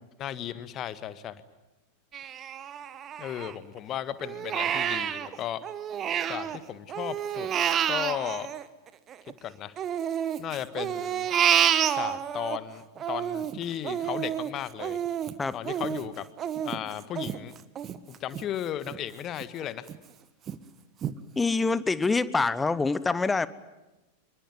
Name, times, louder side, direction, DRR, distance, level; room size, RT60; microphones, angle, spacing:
voice 1, 0.2-1.4 3.2-5.6 6.3-7.5 7.9-8.5 9.4-9.7 10.4-11.3 11.9-15.0 15.5-16.3 16.6-17.5 18.1-19.9, left 11 dB, 30° left, 14 dB, 1.6 m, -35 dB
Crying sobbing, 2.1-3.8 4.2-6.6 6.9-9.3 9.8-12.6 13.0-18.4 18.9-19.0 19.4-20.0 20.5-20.6 21.0-21.1, right 9 dB, 30° right, 1.4 m, -29 dB
voice 2, 21.4-23.5, left 3 dB, 10° left, 17 dB, 1.1 m, -25 dB
26.0 x 23.5 x 9.5 m, 1.0 s
figure-of-eight pair, 90°, 0 cm